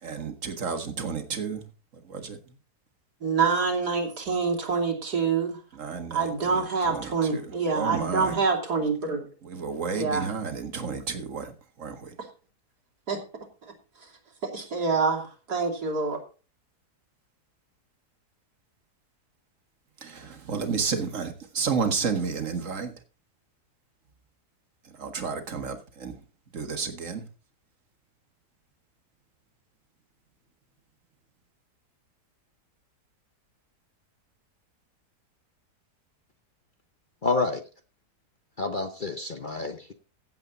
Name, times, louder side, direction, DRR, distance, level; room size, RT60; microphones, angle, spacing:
voice 1, 0.0-1.7 2.0-2.5 5.7-8.4 9.4-11.5 11.8-12.2 20.0-22.9 24.8-26.2 26.5-27.3, right 5 dB, 50° right, 2.0 m, -32 dB
voice 2, 3.2-5.6 6.1-9.3 9.9-10.3 13.1-13.2 14.4-16.2, right 4 dB, 80° right, 3.4 m, -26 dB
voice 3, 37.2-37.6 38.6-39.9, left 3 dB, 40° left, 0.9 m, -28 dB
15.5 x 7.9 x 4.0 m
omnidirectional pair, 1.7 m